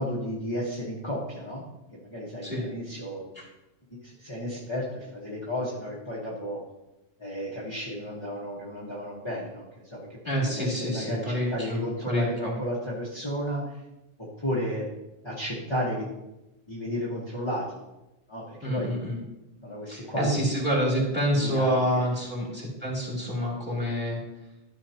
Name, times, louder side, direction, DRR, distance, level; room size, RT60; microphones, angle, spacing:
voice 1, 0.0-1.6 1.9-3.2 4.0-6.6 7.2-13.7 14.4-14.9 15.2-16.1 16.7-17.7 18.3-19.0 19.6-20.5 21.4-22.1, equal, 25° left, -7 dB, 1.5 m, -33 dB
voice 2, 10.2-11.8 12.1-12.5 18.6-19.2 19.9-24.2, equal, 10° right, -4 dB, 2.9 m, -27 dB
13.0 x 6.3 x 2.9 m, 0.95 s
omnidirectional pair, 1.2 m